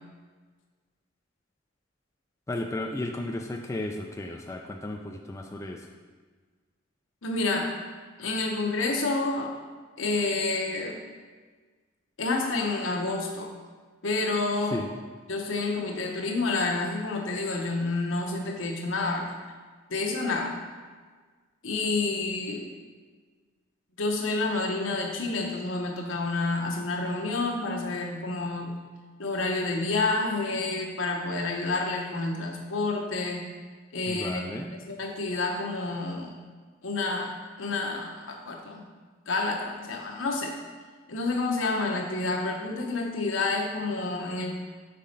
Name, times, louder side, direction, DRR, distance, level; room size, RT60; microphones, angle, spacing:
voice 1, 2.5-5.8 14.7-15.0 34.1-34.7, left 1 dB, 15° left, 2 dB, 0.4 m, -34 dB
voice 2, 7.2-7.7 8.2-9.5 10.0-11.0 12.2-13.5 14.0-14.8 15.3-19.3 19.9-20.6 21.6-22.7 24.0-28.7 29.2-33.5 33.9-34.5 34.8-36.3 36.8-37.3 37.6-38.9 39.3-40.5 41.1-44.6, left 3 dB, 75° left, 1 dB, 1.0 m, -29 dB
5.6 x 4.3 x 5.2 m, 1.5 s
head